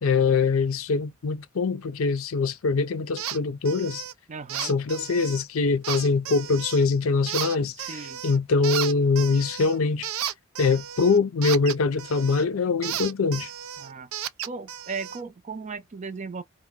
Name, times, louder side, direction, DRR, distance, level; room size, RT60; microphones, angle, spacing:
voice 1, 0.0-4.0 4.6-8.0 8.2-10.1 10.6-13.5, left 4 dB, 85° left, 0.5 m, -23 dB
sound 1, 3.2-3.4 3.7-4.1 4.5-5.4 5.8-6.8 7.3-8.4 8.6-12.5 12.8-15.2, right 11 dB, 90° right, 0.4 m, -34 dB
voice 2, 4.3-4.8 7.7-8.2 13.8-14.1 14.4-16.4, right 4 dB, 35° right, 0.5 m, -36 dB
2.8 x 2.1 x 3.6 m
head